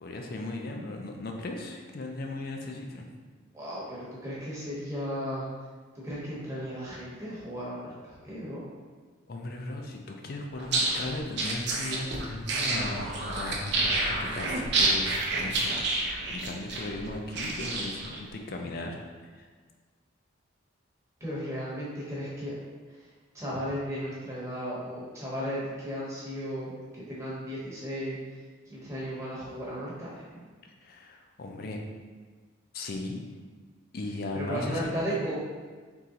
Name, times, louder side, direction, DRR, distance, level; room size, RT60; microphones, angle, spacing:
voice 1, 0.0-3.1 9.3-19.5 30.8-31.8 32.7-33.2 33.9-35.3, left 2 dB, 45° left, 2 dB, 0.4 m, -37 dB
voice 2, 3.5-5.4 5.9-8.6 21.2-22.5 23.3-28.2 28.7-30.5 34.3-35.4, equal, 15° right, -8 dB, 0.9 m, -35 dB
sound 1, 10.6-18.2, right 2 dB, 55° right, 0.5 m, -29 dB
3.7 x 3.0 x 2.8 m, 1.5 s
head